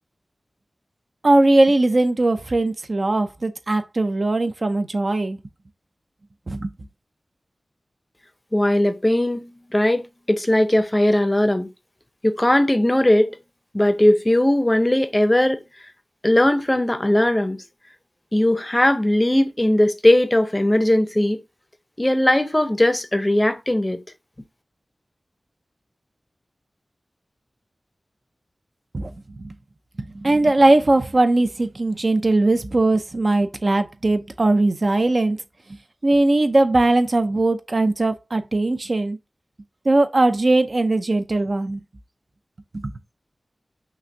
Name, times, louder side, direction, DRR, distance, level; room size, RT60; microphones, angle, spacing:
voice 1, 1.2-5.4 6.5-6.7 28.9-29.1 29.4-29.5 30.1-35.4 36.0-39.2 39.8-41.8 42.7-42.9, right 2 dB, 50° right, 0.5 m, -19 dB
voice 2, 8.5-11.7 12.2-13.3 13.7-15.6 16.2-17.6 18.3-21.4 22.0-24.0, left 1 dB, 20° left, 0.6 m, -19 dB
6.0 x 2.5 x 2.6 m
wide cardioid pair, 75°, 0 cm